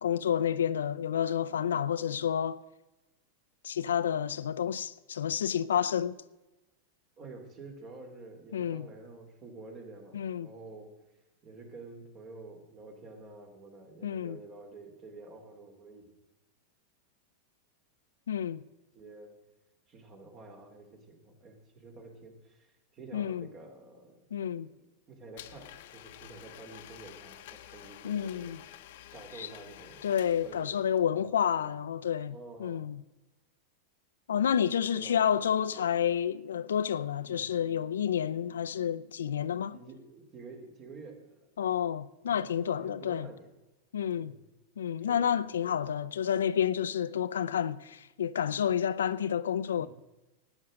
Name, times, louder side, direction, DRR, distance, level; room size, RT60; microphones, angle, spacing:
voice 1, 0.0-2.6 3.6-6.2 8.5-8.9 10.1-10.5 14.0-14.4 18.3-18.6 23.1-23.5 24.3-24.7 28.0-28.6 29.4-29.5 30.0-33.0 34.3-39.8 41.6-43.3 43.9-44.3 44.8-49.9, left 9 dB, 85° left, 0.5 m, -30 dB
voice 2, 7.2-10.9 11.4-16.1 18.9-19.3 19.9-24.2 25.1-28.5 29.1-30.1 30.4-30.8 31.1-31.7 32.3-32.8 34.9-35.9 37.2-37.5 39.7-41.5 42.3-43.5 44.1-44.4 45.1-45.8 49.8-49.9, right 3 dB, 40° right, 3.2 m, -49 dB
Domestic sounds home sounds, 25.4-31.0, left 13 dB, 65° left, 0.8 m, -50 dB
12.5 x 9.6 x 6.4 m
hypercardioid pair, 105°, 0 cm